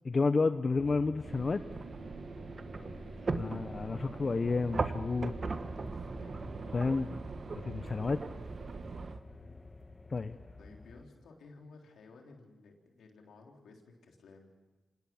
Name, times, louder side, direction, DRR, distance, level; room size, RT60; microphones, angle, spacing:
voice 1, 0.0-1.6 3.3-5.4 6.7-7.1 7.5-8.2 10.1-10.4, left 4 dB, 50° left, 10 dB, 0.8 m, -30 dB
sound 1, 0.8-11.1, left 2 dB, 30° left, 1.4 m, -50 dB
sound 2, 1.2-9.2, right 5 dB, 70° right, 1.3 m, -48 dB
sound 3, 1.7-9.2, right 4 dB, 50° right, 1.5 m, -40 dB
voice 2, 2.7-3.7 5.6-7.5 8.0-8.4 9.2-9.6 10.6-14.5, left 3 dB, 90° left, 2 dB, 3.6 m, -57 dB
26.0 x 19.0 x 7.1 m, 1.1 s
cardioid pair, 50°, 0 cm